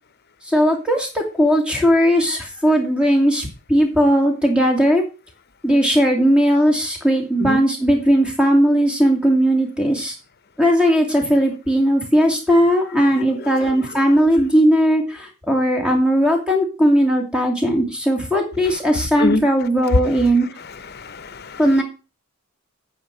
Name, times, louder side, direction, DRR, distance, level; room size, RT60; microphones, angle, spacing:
voice 1, 0.4-5.0 5.6-10.1 10.6-20.5 21.6-21.8, equal, 5° right, 2.5 m, -17 dB
voice 2, 13.4-13.9 18.7-18.8 19.2-19.4 19.9-20.0 20.6-21.6, left 2 dB, 45° left, 0.8 m, -24 dB
9.4 x 5.0 x 7.4 m
head